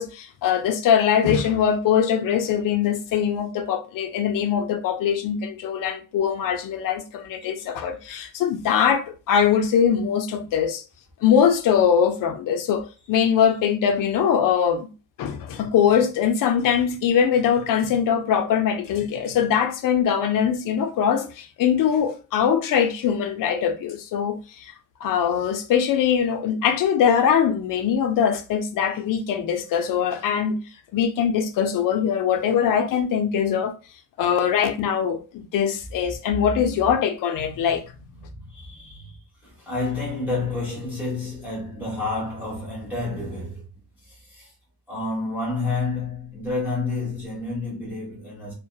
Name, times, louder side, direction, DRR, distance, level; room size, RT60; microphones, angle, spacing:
voice 1, 0.0-10.8 11.2-14.9 15.2-24.7 25.0-30.6 30.9-33.7 34.2-37.8, left 8 dB, 55° left, 0.5 m, -22 dB
voice 2, 7.4-7.7 36.6-36.9 37.3-43.7 44.0-44.5 44.9-48.5, left 3 dB, 5° right, 1.0 m, -30 dB
2.7 x 2.1 x 2.2 m
cardioid pair, 180°, 41 cm